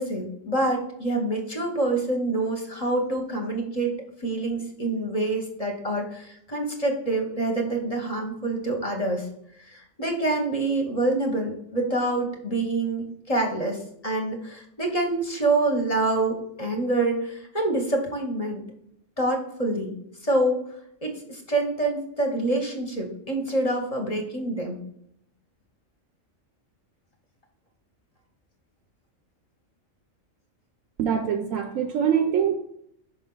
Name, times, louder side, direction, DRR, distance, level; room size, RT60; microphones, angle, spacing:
voice 1, 0.0-3.9 4.2-9.3 9.6-18.6 19.2-20.0 20.2-20.6 21.0-24.8, right 2 dB, 30° left, 2 dB, 0.9 m, -26 dB
voice 2, 31.0-32.5, right 8 dB, 85° right, 5 dB, 1.0 m, -24 dB
5.6 x 5.0 x 3.8 m, 0.72 s
omnidirectional pair, 1.4 m